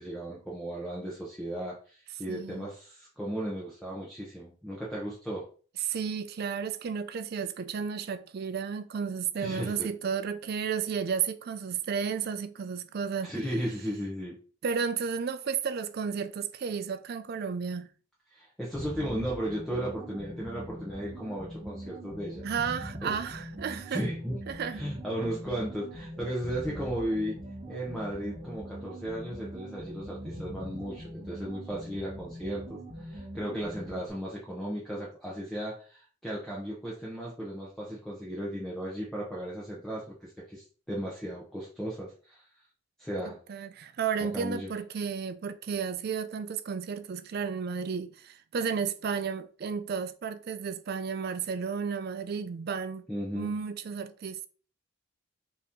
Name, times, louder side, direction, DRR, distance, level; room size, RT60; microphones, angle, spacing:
voice 1, 0.0-5.5 9.4-9.9 13.2-14.4 18.3-22.4 23.0-23.1 23.9-24.4 24.7-27.4 27.7-42.5 43.0-43.4 44.3-44.7 53.1-53.5, equal, 5° left, 0.7 m, -35 dB
voice 2, 2.3-2.7 5.8-13.3 14.6-17.9 22.4-24.1 24.5-24.8 43.2-53.1 53.3-54.5, right 6 dB, 45° right, 0.3 m, -33 dB
sound 1, 18.7-34.1, equal, 30° right, 1.1 m, -42 dB
4.1 x 2.8 x 3.5 m
head